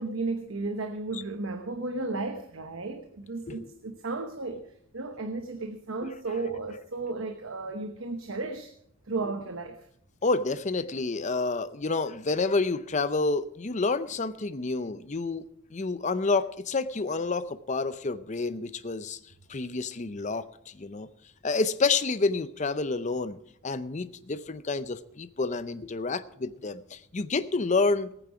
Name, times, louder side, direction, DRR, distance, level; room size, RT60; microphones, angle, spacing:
voice 1, 0.0-4.7 4.9-8.7 9.1-9.8 19.6-19.7, right 3 dB, 80° right, 1.0 m, -34 dB
voice 2, 10.2-15.4 15.7-19.2 19.5-21.1 21.4-28.1, left 3 dB, 35° left, 0.6 m, -29 dB
18.0 x 9.2 x 5.0 m
head